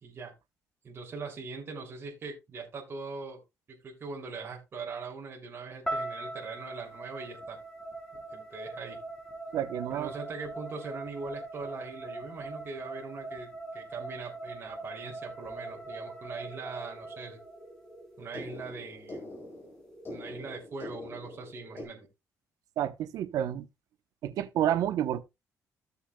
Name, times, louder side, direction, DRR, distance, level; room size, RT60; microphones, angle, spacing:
voice 1, 0.0-0.3 0.8-3.4 3.7-7.6 8.3-9.0 9.9-17.4 18.2-19.3 20.1-22.1, right 4 dB, 40° right, 3.0 m, -41 dB
sound 1, 5.9-18.0, right 2 dB, 10° left, 4.0 m, -41 dB
voice 2, 9.5-10.1 22.8-23.7 24.2-25.2, right 11 dB, 80° right, 0.9 m, -29 dB
sound 2, 15.4-21.8, left 1 dB, 35° left, 4.4 m, -46 dB
14.5 x 7.0 x 2.3 m
cardioid pair, 120°, 6 cm